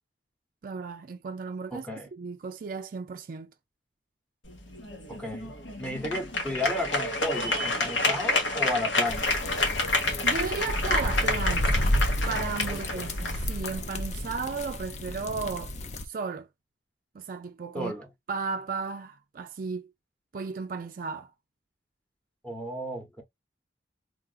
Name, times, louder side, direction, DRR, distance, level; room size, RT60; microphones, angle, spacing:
voice 1, 0.6-3.5 10.2-15.7 16.0-16.5 17.1-17.9 18.3-19.9 20.3-21.3, right 5 dB, 45° right, 0.4 m, -34 dB
voice 2, 1.7-2.1 5.1-5.5 5.8-9.4 12.7-13.1 17.7-18.1 22.4-23.2, left 1 dB, 5° left, 0.9 m, -33 dB
sound 1, 4.4-14.5, left 2 dB, 90° left, 1.4 m, -29 dB
sound 2, 9.1-16.0, left 1 dB, 40° left, 0.5 m, -31 dB
3.7 x 2.4 x 2.3 m
head